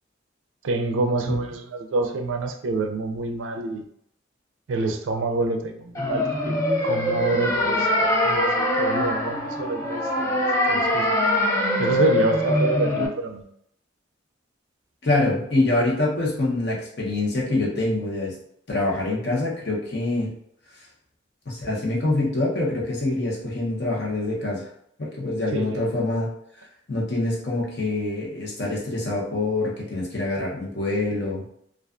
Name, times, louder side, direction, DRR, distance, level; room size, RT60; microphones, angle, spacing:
voice 1, 0.6-3.8 4.7-6.6 6.8-11.1 11.8-13.4 25.5-25.9, right 3 dB, 85° right, 5 dB, 0.4 m, -27 dB
sound 1, 6.0-13.1, left 1 dB, 15° left, 0.4 m, -23 dB
voice 2, 15.0-18.3 18.7-20.3 21.5-24.7 25.0-26.3 26.9-31.5, left 2 dB, 60° left, -4 dB, 0.8 m, -25 dB
2.4 x 2.3 x 2.4 m, 0.71 s
head